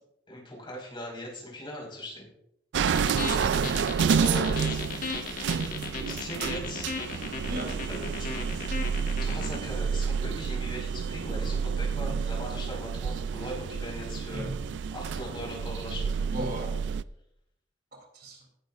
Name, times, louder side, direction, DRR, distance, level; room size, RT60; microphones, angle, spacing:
voice 1, 0.3-2.3 4.2-4.9 6.1-6.9 7.9-8.6 9.2-16.5, left 1 dB, 30° left, -2 dB, 5.1 m, -40 dB
sound 1, 2.7-17.0, right 6 dB, 80° right, 0.3 m, -29 dB
sound 2, 2.9-9.6, left 4 dB, 50° left, 1.7 m, -35 dB
voice 2, 7.4-7.8 12.0-12.2 14.3-14.5 16.2-16.8 17.9-18.4, right 1 dB, 60° right, 2 dB, 3.3 m, -37 dB
18.5 x 10.5 x 2.6 m, 0.77 s
head